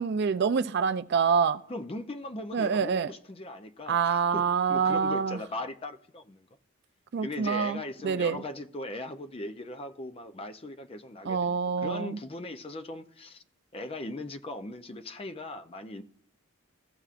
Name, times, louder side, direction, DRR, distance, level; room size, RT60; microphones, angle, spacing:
voice 1, 0.0-1.6 2.5-3.1 3.9-5.4 7.1-8.4 11.2-12.2, right 6 dB, 50° right, 0.3 m, -26 dB
voice 2, 1.7-6.5 7.2-13.4 13.7-16.0, left 2 dB, 25° left, 0.4 m, -39 dB
15.5 x 6.8 x 2.5 m
head